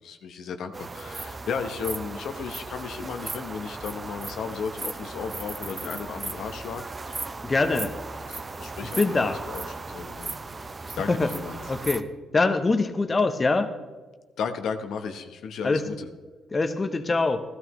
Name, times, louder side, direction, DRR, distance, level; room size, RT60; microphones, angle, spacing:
voice 1, 0.0-7.2 7.5-7.9 8.3-10.3 10.9-11.6 14.4-16.1, left 6 dB, 70° left, 7 dB, 0.9 m, -35 dB
sound 1, 0.7-12.0, right 3 dB, 25° right, 0.6 m, -37 dB
voice 2, 7.4-7.9 9.0-9.4 11.0-11.3 11.7-12.1 12.3-13.7 15.6-15.8 16.5-17.4, left 3 dB, 30° left, 8 dB, 0.8 m, -23 dB
14.5 x 12.5 x 3.1 m, 1.3 s
cardioid pair, 90°, 0 cm